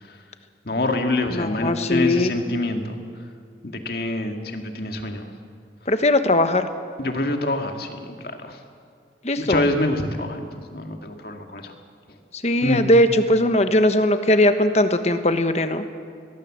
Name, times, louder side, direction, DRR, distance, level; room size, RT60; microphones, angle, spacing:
voice 1, 0.6-2.9 3.6-5.3 7.0-8.6 9.3-11.7 12.6-12.9, left 1 dB, 55° left, 4 dB, 2.2 m, -26 dB
voice 2, 1.3-2.3 5.9-6.7 9.2-9.6 12.4-15.8, left 1 dB, 35° left, 9 dB, 1.3 m, -19 dB
23.0 x 19.5 x 7.6 m, 2.3 s
head